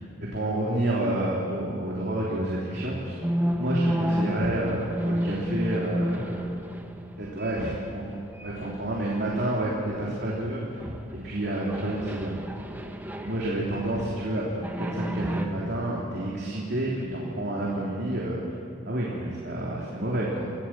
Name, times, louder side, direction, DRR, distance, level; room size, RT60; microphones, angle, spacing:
voice 1, 0.2-3.2 3.6-6.4 7.2-8.1 8.4-12.4 13.2-18.5 18.8-20.5, right 1 dB, 55° right, -5 dB, 3.4 m, -29 dB
sound 1, 3.2-8.1 8.4-9.9 10.3-10.4 10.8-14.3 14.6-15.5, equal, 10° right, 1.2 m, -31 dB
27.5 x 16.0 x 7.7 m, 2.5 s
head